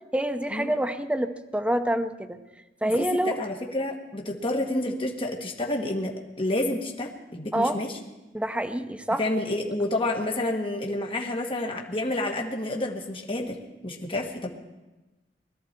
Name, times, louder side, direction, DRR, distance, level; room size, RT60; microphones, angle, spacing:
voice 1, 0.1-2.4 2.8-3.4 7.5-7.8 8.3-9.2, right 1 dB, 5° right, 8 dB, 0.8 m, -26 dB
voice 2, 2.9-7.9 9.2-13.6 13.8-14.5, left 1 dB, 30° left, 1 dB, 1.7 m, -29 dB
21.0 x 13.0 x 4.5 m, 1.1 s
head